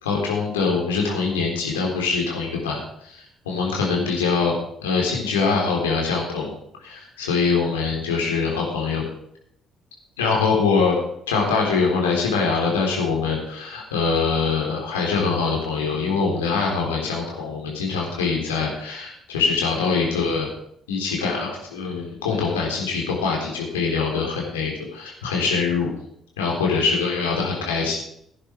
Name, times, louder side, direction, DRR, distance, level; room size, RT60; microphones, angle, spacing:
voice 1, 0.0-4.5 4.8-6.5 6.8-9.0 10.2-11.0 11.3-20.5 20.9-25.9 26.4-28.0, left 4 dB, 75° left, -1 dB, 3.9 m, -23 dB
16.5 x 10.0 x 4.8 m, 0.72 s
figure-of-eight pair, 45°, 0 cm